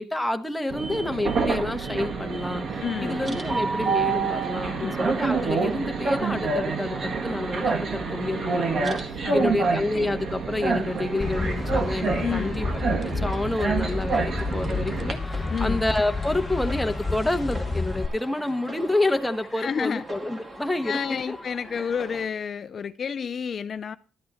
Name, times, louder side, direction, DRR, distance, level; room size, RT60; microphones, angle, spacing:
voice 1, 0.0-2.6 3.0-12.7 13.0-21.0 21.3-21.4 21.7-21.8, left 2 dB, 5° left, 1.1 m, -28 dB
Train, 0.7-15.1, right 4 dB, 55° right, 1.7 m, -27 dB
voice 2, 2.8-3.2 4.8-5.1 9.2-9.6 12.2-12.6 15.5-15.8 19.5-20.0 20.8-24.0, left 7 dB, 50° left, 0.4 m, -30 dB
sound 1, 2.9-22.3, right 1 dB, 25° right, 2.5 m, -43 dB
sound 2, 11.2-18.1, left 3 dB, 30° left, 0.8 m, -30 dB
12.0 x 8.5 x 4.2 m
cardioid pair, 90°, 0 cm